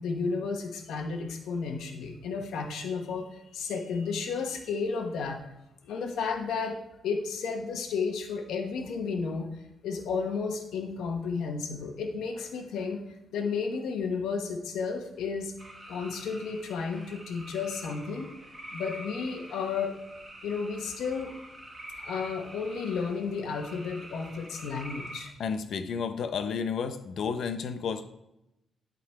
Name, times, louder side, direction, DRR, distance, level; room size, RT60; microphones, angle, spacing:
voice 1, 0.0-5.4 5.8-6.8 7.0-13.0 13.3-15.5 15.9-18.3 18.7-20.0 20.4-21.4 22.0-25.3, left 5 dB, 80° left, 3 dB, 1.1 m, -32 dB
sound 1, 15.6-25.3, right 1 dB, 15° right, 1.5 m, -46 dB
voice 2, 25.4-28.0, left 6 dB, 55° left, 9 dB, 0.6 m, -31 dB
11.5 x 3.9 x 4.7 m, 0.88 s
cardioid pair, 165°, 0 cm